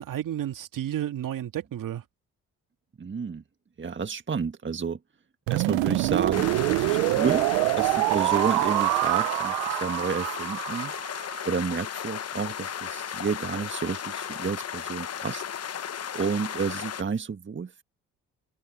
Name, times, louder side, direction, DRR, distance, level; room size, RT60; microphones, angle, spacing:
voice 1, 0.0-2.0, right 11 dB, 60° right, 2.9 m, -32 dB
voice 2, 3.0-3.4 3.8-5.0 5.5-7.5 7.8-10.9 11.5-15.4 16.1-17.8, right 5 dB, 30° right, 1.8 m, -30 dB
sound 1, 5.5-11.4, right 23 dB, 75° right, 1.1 m, -25 dB
sound 2, 6.3-17.0, left 8 dB, 45° left, 1.2 m, -35 dB
hypercardioid pair, 50°, 36 cm